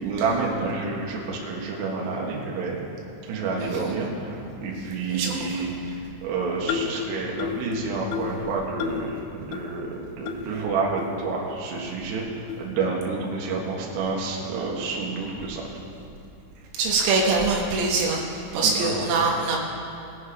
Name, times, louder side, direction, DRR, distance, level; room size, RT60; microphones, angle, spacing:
voice 1, 0.0-2.8 3.3-5.8 6.2-15.6 18.6-19.1, right 4 dB, 65° right, -2 dB, 3.4 m, -29 dB
voice 2, 5.1-5.6 16.7-19.6, right 3 dB, 80° right, -1 dB, 3.8 m, -24 dB
sound 1, 6.7-7.0 7.4-7.7 8.1-8.4 8.8-9.1 9.5-9.6 10.3-10.4 11.0-11.1 11.8-11.9 12.5-12.7, left 9 dB, 90° left, 3.4 m, -30 dB
20.5 x 7.5 x 4.9 m, 2.6 s
omnidirectional pair, 6.0 m